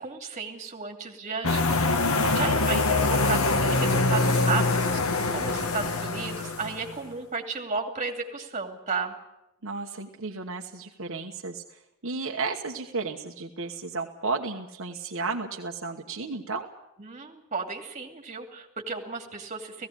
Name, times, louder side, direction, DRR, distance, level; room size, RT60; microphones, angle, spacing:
voice 1, 0.0-1.8 2.3-9.1 17.0-19.9, right 4 dB, 35° right, 4 dB, 2.6 m, -33 dB
sound 1, 1.4-7.0, left 3 dB, 85° left, 1.7 m, -24 dB
voice 2, 9.6-16.7, right 4 dB, 65° right, 2 dB, 1.3 m, -33 dB
17.5 x 16.0 x 9.9 m, 0.92 s
head